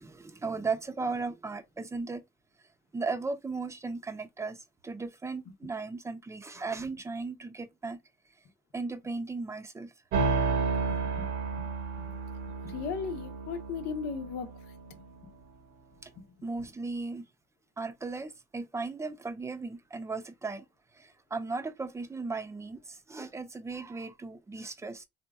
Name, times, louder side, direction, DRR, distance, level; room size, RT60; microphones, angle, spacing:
voice 1, 0.0-2.2 2.9-8.0 8.7-9.9 16.0-16.1 16.4-17.2 17.8-20.7 20.9-25.0, right 4 dB, 15° right, 0.6 m, -36 dB
sound 1, 10.1-15.0, right 4 dB, 80° right, 1.2 m, -32 dB
voice 2, 10.8-11.6 12.1-12.2 12.6-14.5, left 6 dB, 85° left, 0.8 m, -37 dB
3.6 x 2.8 x 2.3 m
cardioid pair, 110°, 17 cm